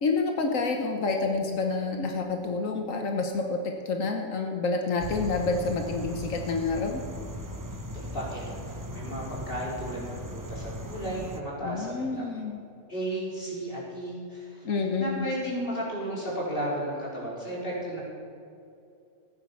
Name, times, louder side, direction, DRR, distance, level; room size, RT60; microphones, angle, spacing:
voice 1, 0.0-3.6 3.8-7.0 11.6-12.6 14.6-15.3, left 4 dB, 85° left, 3 dB, 1.6 m, -28 dB
sound 1, 5.0-11.4, equal, 20° right, 0.8 m, -38 dB
voice 2, 7.9-12.1 12.9-14.7 15.0-18.0, equal, 45° left, -5 dB, 4.6 m, -34 dB
15.5 x 9.5 x 7.2 m, 2.6 s
omnidirectional pair, 1.3 m